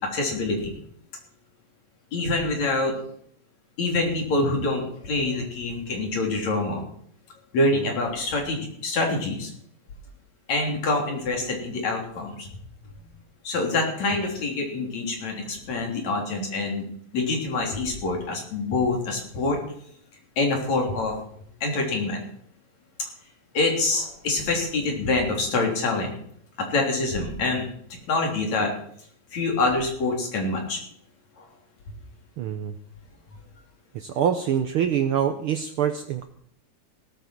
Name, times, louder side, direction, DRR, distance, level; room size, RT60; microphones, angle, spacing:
voice 1, 0.1-0.7 2.1-3.0 3.8-6.8 7.5-9.5 10.5-12.5 13.4-16.9 17.1-19.6 20.4-21.1 21.6-22.2 23.5-26.1 26.7-28.7 29.3-30.8 31.4-31.5, left 2 dB, 65° left, 1 dB, 4.7 m, -26 dB
voice 2, 32.4-32.7 33.9-36.3, right 9 dB, 80° right, 9 dB, 1.2 m, -25 dB
17.0 x 13.5 x 4.6 m, 0.66 s
omnidirectional pair, 3.4 m